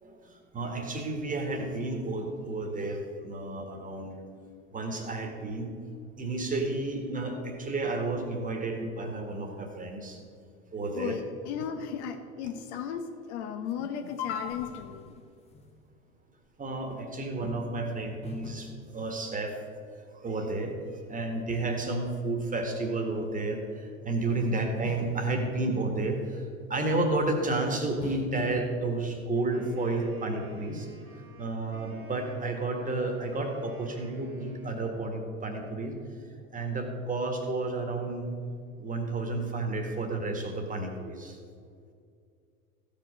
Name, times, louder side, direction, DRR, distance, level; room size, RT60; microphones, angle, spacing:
voice 1, 0.0-4.2 4.7-5.7 6.2-10.2 10.7-11.2 16.6-19.6 20.1-20.8 21.1-30.9 31.4-36.0 36.5-38.3 38.8-41.4, right 2 dB, 20° right, 4 dB, 1.7 m, -31 dB
voice 2, 10.9-15.2, left 8 dB, 50° left, 7 dB, 0.9 m, -35 dB
sound 1, 13.7-13.8 14.1-16.1 16.4-16.5 18.2-19.6 21.5-22.9 24.8-26.4 28.0-28.7, left 2 dB, 15° left, 0.8 m, -46 dB
Wind instrument woodwind instrument, 29.3-35.2, right 2 dB, 85° right, 1.8 m, -53 dB
14.5 x 5.4 x 6.4 m, 2.3 s
figure-of-eight pair, 75°, 43 cm